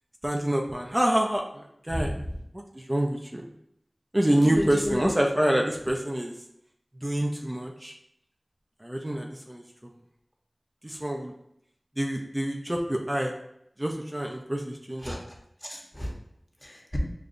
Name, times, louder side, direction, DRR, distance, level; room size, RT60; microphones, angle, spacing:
voice 1, 0.2-2.1 2.7-3.4 4.1-6.3 7.0-7.9 8.8-9.6 10.8-11.3 12.0-13.3 13.8-15.2, right 1 dB, 25° right, 0 dB, 0.5 m, -27 dB
voice 2, 4.3-5.1 15.0-15.4 15.6-16.1 16.6-17.0, equal, 25° left, -1 dB, 0.9 m, -32 dB
6.5 x 2.3 x 2.5 m, 0.75 s
wide cardioid pair, 50°, 0 cm